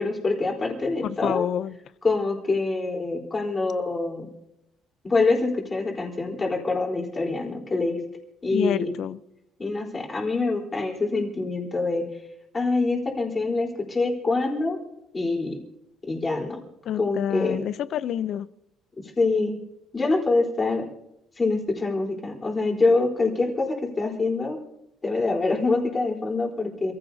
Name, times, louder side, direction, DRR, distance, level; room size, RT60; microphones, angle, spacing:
voice 1, 0.0-1.5 2.0-4.3 5.0-8.0 8.4-8.9 9.6-12.1 12.5-14.8 15.1-15.6 16.1-16.6 17.0-17.6 19.2-19.6 19.9-20.9 21.4-24.6 25.0-26.9, left 3 dB, 20° left, 0 dB, 4.0 m, -25 dB
voice 2, 1.0-1.8 8.5-9.2 16.9-18.5, left 10 dB, 60° left, 16 dB, 0.6 m, -28 dB
27.5 x 15.5 x 2.8 m, 0.84 s
cardioid pair, 125°, 0 cm